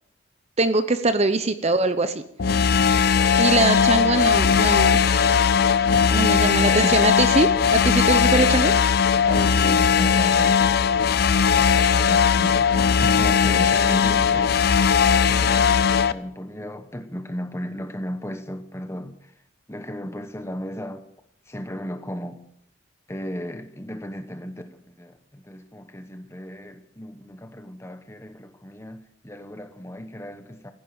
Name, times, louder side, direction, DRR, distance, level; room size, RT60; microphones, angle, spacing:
voice 1, 0.6-2.1 3.4-5.0 6.1-8.7, right 2 dB, 30° right, 0.8 m, -22 dB
sound 1, 2.4-16.1, left 6 dB, 50° left, 0.5 m, -19 dB
voice 2, 6.5-7.0 9.2-12.7 13.0-14.6 15.2-19.3 19.7-21.1 21.5-22.4 23.1-30.7, equal, 15° left, 1.1 m, -35 dB
15.5 x 10.5 x 8.1 m
head